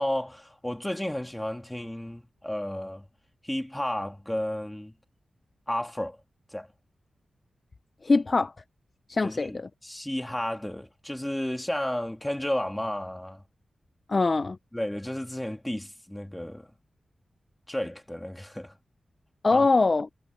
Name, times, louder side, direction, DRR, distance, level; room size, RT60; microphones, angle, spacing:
voice 1, 0.0-3.0 3.4-4.9 5.7-6.2 6.5-6.7 9.2-13.4 14.7-16.7 17.7-18.7 19.5-19.7, left 1 dB, 5° left, 2.4 m, -32 dB
voice 2, 8.0-8.5 9.1-9.7 14.1-14.6 19.4-20.1, left 3 dB, 30° left, 0.4 m, -23 dB
wide cardioid pair, 170°, 0 cm